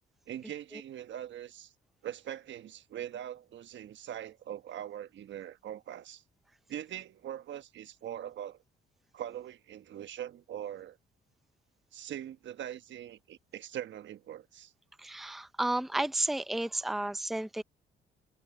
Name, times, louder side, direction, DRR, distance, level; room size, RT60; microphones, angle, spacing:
voice 1, 0.3-1.7 2.0-6.2 6.7-8.6 9.1-11.0 11.9-14.7, right 11 dB, 70° right, 1.3 m, -42 dB
voice 2, 15.0-17.6, right 2 dB, ahead, 0.6 m, -32 dB
open air
cardioid pair, 90°, 20 cm